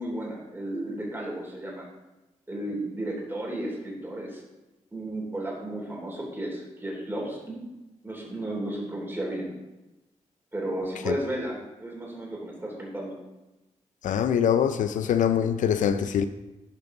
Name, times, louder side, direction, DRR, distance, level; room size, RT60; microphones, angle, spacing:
voice 1, 0.0-1.9 2.5-4.4 4.9-7.6 8.0-9.5 10.5-13.2, right 1 dB, 15° right, -2 dB, 3.4 m, -33 dB
voice 2, 14.0-16.2, left 8 dB, 90° left, 11 dB, 0.5 m, -23 dB
11.5 x 5.4 x 3.9 m, 1.0 s
cardioid pair, 65°, 13 cm